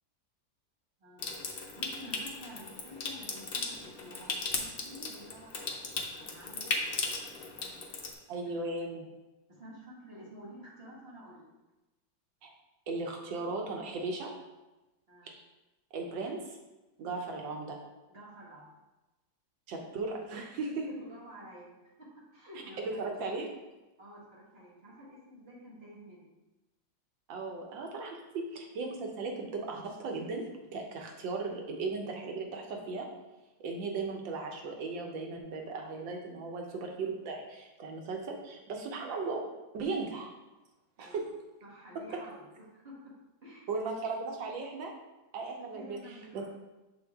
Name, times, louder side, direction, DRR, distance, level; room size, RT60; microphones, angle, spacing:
voice 1, 1.0-6.7 7.0-8.4 8.9-9.1 9.5-11.5 15.1-15.3 17.1-17.3 18.1-18.7 20.6-23.3 24.0-26.3 41.0-41.3 41.6-43.1 43.4-43.7 45.6-46.5, equal, 35° right, -7 dB, 1.8 m, -51 dB
Water tap faucet / Sink (filling or washing) / Trickle dribble, 1.2-8.1, left 3 dB, 80° left, 0.5 m, -37 dB
voice 2, 8.3-9.1 12.4-12.5 12.9-14.3 15.2-15.3 15.9-16.4 17.0-17.8 19.7-20.8 22.8-23.5 27.3-30.4 30.7-33.1 33.6-39.4 39.7-40.3 41.0-41.2 43.7-44.9 45.3-46.0 46.3-46.5, right 3 dB, 85° right, 1 dB, 1.6 m, -37 dB
6.8 x 4.2 x 3.5 m, 1.1 s
omnidirectional pair, 2.0 m